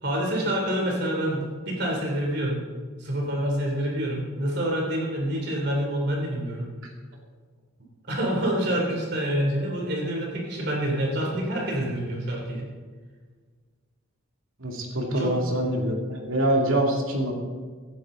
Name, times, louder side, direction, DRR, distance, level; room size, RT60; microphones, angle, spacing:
voice 1, 0.0-2.6 3.0-6.7 8.1-12.7 15.1-15.4, right 1 dB, 50° right, -1 dB, 2.9 m, -27 dB
voice 2, 14.6-17.3, right 1 dB, 80° right, 1 dB, 2.5 m, -25 dB
16.0 x 11.0 x 3.8 m, 1.5 s
head